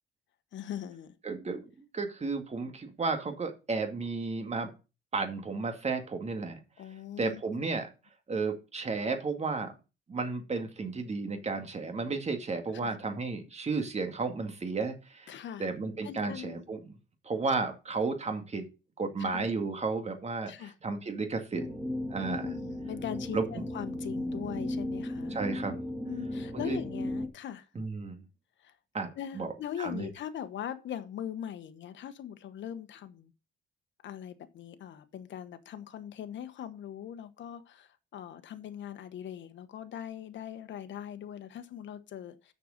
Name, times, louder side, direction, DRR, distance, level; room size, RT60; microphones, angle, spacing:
voice 1, 0.5-1.1 6.8-7.6 12.7-13.0 15.3-15.7 16.0-16.7 19.2-19.4 20.5-20.7 22.2-25.4 26.1-27.7 28.6-28.7 29.2-33.3 34.0-42.5, left 10 dB, 70° left, 1.2 m, -41 dB
voice 2, 1.2-1.6 1.9-4.7 5.1-6.6 7.2-7.9 8.3-9.7 10.1-15.3 15.6-16.9 17.2-18.7 19.0-21.6 22.1-22.5 23.3-23.6 25.3-25.8 26.5-26.8 27.8-28.2 28.9-29.1 29.3-29.5 29.8-30.1, right 4 dB, 35° right, 2.2 m, -33 dB
sound 1, 21.5-27.3, left 1 dB, 10° right, 2.4 m, -36 dB
6.7 x 6.5 x 6.6 m
cardioid pair, 90°, 20 cm